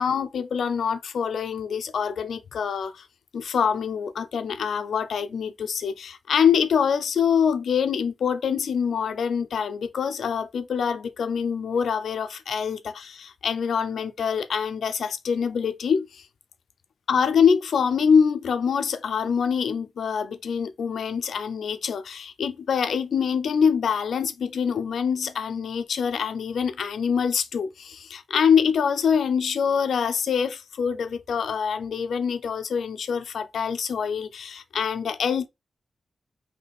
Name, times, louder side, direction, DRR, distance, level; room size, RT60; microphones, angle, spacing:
voice 1, 0.0-3.0 3.3-16.2 17.1-35.5, left 7 dB, 85° left, 0.5 m, -25 dB
4.0 x 2.8 x 3.5 m
wide cardioid pair, 125°, 0 cm